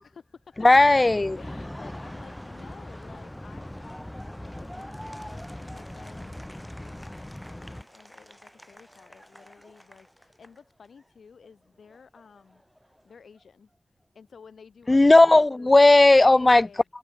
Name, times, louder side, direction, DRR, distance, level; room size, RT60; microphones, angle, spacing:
voice 1, 0.0-0.7 1.4-4.1 4.3-12.6 13.0-13.7 14.1-15.8 16.2-16.8, left 6 dB, 90° left, 2.3 m, -52 dB
voice 2, 0.6-1.4 14.9-16.7, left 2 dB, 35° left, 0.5 m, -15 dB
sound 1, 0.7-7.8, left 1 dB, 15° left, 3.4 m, -40 dB
Laughter, 1.2-11.1 11.4-13.4, equal, ahead, 3.3 m, -49 dB
cardioid pair, 45°, 0 cm